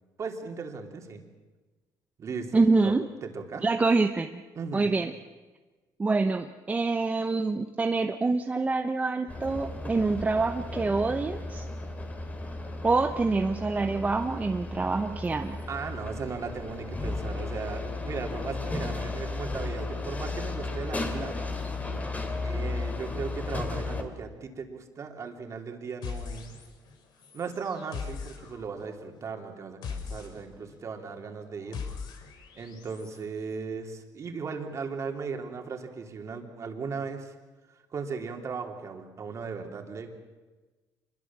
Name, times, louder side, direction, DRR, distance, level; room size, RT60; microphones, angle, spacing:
voice 1, 0.2-1.2 2.2-2.9 3.2-3.7 4.5-4.9 15.7-21.5 22.4-26.5 27.3-31.8 32.5-37.3 37.9-40.1, right 5 dB, 40° right, 3 dB, 3.3 m, -37 dB
voice 2, 2.5-3.0 3.6-4.4 4.7-5.1 6.0-11.7 12.8-15.6, right 3 dB, 20° right, 7 dB, 0.9 m, -26 dB
sound 1, 9.3-24.0, left 2 dB, 20° left, 2.7 m, -34 dB
sound 2, 26.0-26.9 27.2-33.2, left 6 dB, 70° left, 4.1 m, -41 dB
26.0 x 22.5 x 7.5 m, 1.3 s
cardioid pair, 120°, 8 cm